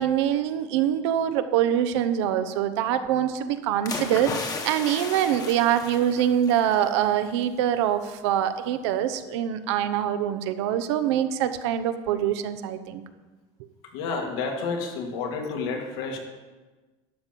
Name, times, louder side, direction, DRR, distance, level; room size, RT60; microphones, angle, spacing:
voice 1, 0.0-13.0, right 10 dB, 90° right, 9 dB, 0.9 m, -24 dB
splash body dive into water pool, 3.9-6.9 7.2-7.4, left 4 dB, 25° left, 1.2 m, -35 dB
voice 2, 13.9-16.2, left 4 dB, 85° left, 2 dB, 2.2 m, -30 dB
12.0 x 5.3 x 7.4 m, 1.2 s
cardioid pair, 140°, 14 cm